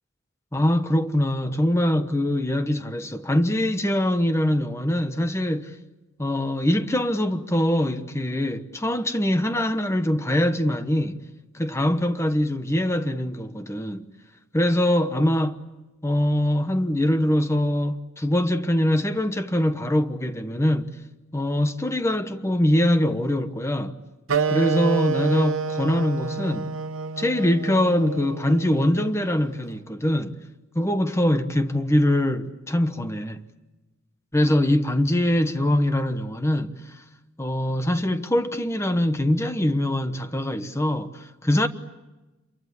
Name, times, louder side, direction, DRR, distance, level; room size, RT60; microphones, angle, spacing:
voice 1, 0.5-5.8 6.2-11.2 11.5-14.1 14.5-15.7 16.0-21.0 21.3-24.0 24.5-26.7 27.2-30.4 30.7-33.5 34.3-37.0 37.4-41.7, left 1 dB, 15° left, 1.1 m, -23 dB
Wind instrument woodwind instrument, 24.3-29.4, right 5 dB, 90° right, 1.0 m, -28 dB
28.0 x 23.5 x 8.5 m
head